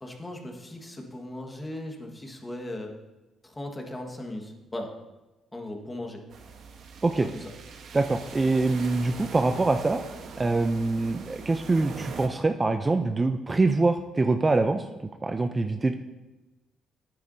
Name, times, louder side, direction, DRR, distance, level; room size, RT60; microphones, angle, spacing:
voice 1, 0.0-2.9 3.4-4.9 5.5-6.2 7.2-7.5, left 1 dB, 20° left, 2 dB, 1.5 m, -38 dB
sound 1, 6.3-12.3, right 5 dB, 70° right, 1.1 m, -42 dB
voice 2, 7.9-10.0 10.4-14.9 15.2-15.9, right 3 dB, 25° right, 7 dB, 0.5 m, -24 dB
10.5 x 9.4 x 2.7 m, 1.1 s
cardioid pair, 90°, 0 cm